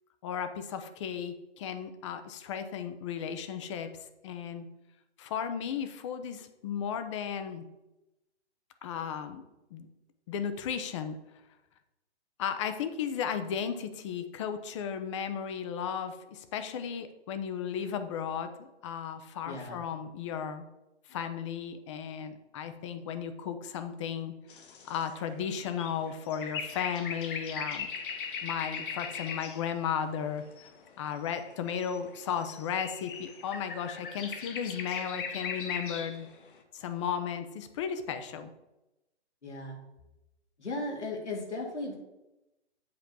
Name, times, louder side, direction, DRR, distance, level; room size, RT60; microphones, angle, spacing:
voice 1, 0.2-4.7 5.2-7.6 8.8-9.4 9.7-9.9 10.3-11.2 12.4-20.6 21.1-27.9 28.4-30.4 31.0-36.3 36.7-38.5, left 8 dB, 25° left, 9 dB, 0.7 m, -35 dB
voice 2, 19.5-19.8 39.4-39.8 40.6-41.9, left 2 dB, 85° left, -1 dB, 3.0 m, -36 dB
sound 1, 24.5-29.8 30.1-36.5, left 6 dB, 50° left, 1.3 m, -40 dB
7.8 x 4.5 x 6.9 m, 0.96 s
hypercardioid pair, 140°, 34 cm